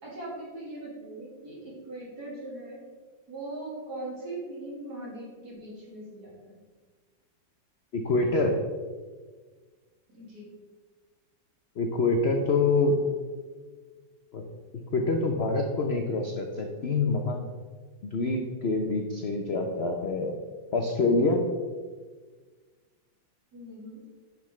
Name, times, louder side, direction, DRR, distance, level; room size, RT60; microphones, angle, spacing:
voice 1, 0.0-2.8 3.3-6.6 10.1-10.5 23.5-24.0, right 2 dB, 55° right, -5 dB, 2.9 m, -40 dB
voice 2, 7.9-8.5 11.8-12.9 14.3-14.4 14.9-17.4 18.0-20.3 20.7-21.4, left 3 dB, 70° left, 2 dB, 0.6 m, -26 dB
10.5 x 6.0 x 3.2 m, 1.4 s
omnidirectional pair, 2.1 m